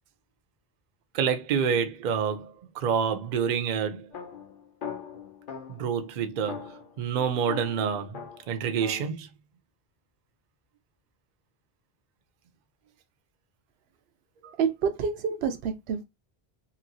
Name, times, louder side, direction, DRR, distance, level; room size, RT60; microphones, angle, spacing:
voice 1, 1.1-4.1 5.7-9.3 14.4-14.5, right 7 dB, 55° right, 0.6 m, -28 dB
sound 1, 4.1-5.9 6.5-9.1, left 6 dB, 60° left, 0.9 m, -40 dB
voice 2, 14.6-16.0, right 6 dB, 85° right, 0.8 m, -28 dB
3.0 x 2.8 x 2.6 m
omnidirectional pair, 1.0 m